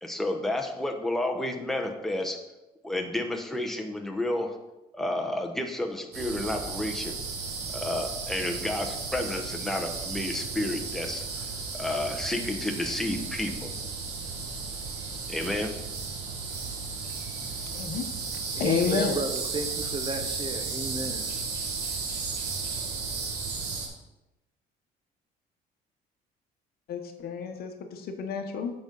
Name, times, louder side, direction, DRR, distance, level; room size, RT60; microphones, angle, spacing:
voice 1, 0.0-2.4 2.8-4.6 4.9-7.1 7.7-11.2 11.7-13.7 15.3-15.8, left 1 dB, ahead, 2 dB, 1.0 m, -31 dB
sound 1, 6.1-23.9, right 4 dB, 85° right, 1.6 m, -34 dB
voice 2, 17.7-18.0 18.6-19.2 26.9-28.7, left 6 dB, 65° left, 6 dB, 1.0 m, -29 dB
voice 3, 18.5-21.2, right 3 dB, 30° right, 6 dB, 0.8 m, -33 dB
8.1 x 5.2 x 3.9 m, 0.98 s
cardioid pair, 110°, 17 cm